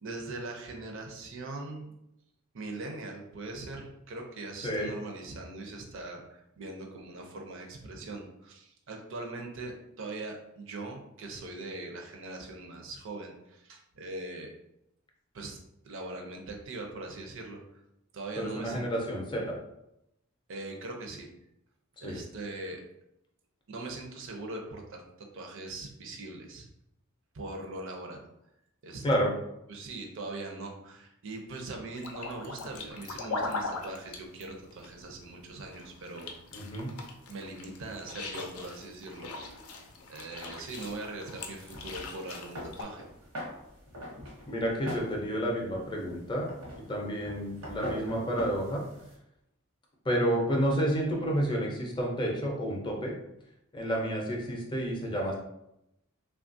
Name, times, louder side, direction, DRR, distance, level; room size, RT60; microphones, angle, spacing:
voice 1, 0.0-1.9 2.5-14.5 15.3-15.6 15.8-17.6 18.1-18.9 20.5-21.3 22.0-22.8 23.7-25.0 25.3-26.7 27.3-28.3 28.8-29.0 29.7-36.3 37.3-39.6 40.1-43.0, right 2 dB, 60° right, 2 dB, 0.5 m, -41 dB
voice 2, 18.4-19.6 22.0-22.2 29.0-29.3 36.5-36.9 44.5-46.5 46.7-48.8 50.0-53.1 53.7-55.3, equal, 20° left, -1 dB, 0.5 m, -30 dB
sound 1, 31.9-42.8, left 3 dB, 80° left, 0.5 m, -41 dB
sound 2, 40.7-49.2, equal, 85° right, 0.9 m, -43 dB
3.1 x 2.3 x 2.5 m, 0.83 s
head